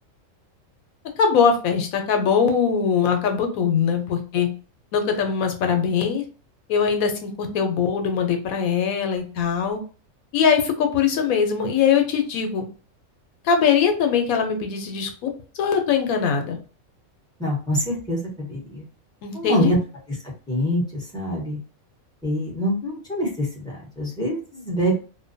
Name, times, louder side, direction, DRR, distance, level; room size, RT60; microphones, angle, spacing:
voice 1, 1.2-4.5 4.9-6.2 6.7-9.8 10.3-12.6 13.4-15.3 15.6-16.6 19.2-19.7, left 6 dB, 85° left, 5 dB, 1.1 m, -21 dB
voice 2, 17.4-18.8 19.3-19.8 20.5-21.6 22.2-23.5 24.0-24.9, equal, 5° left, -4 dB, 1.0 m, -25 dB
2.5 x 2.2 x 2.6 m, 0.37 s
omnidirectional pair, 1.4 m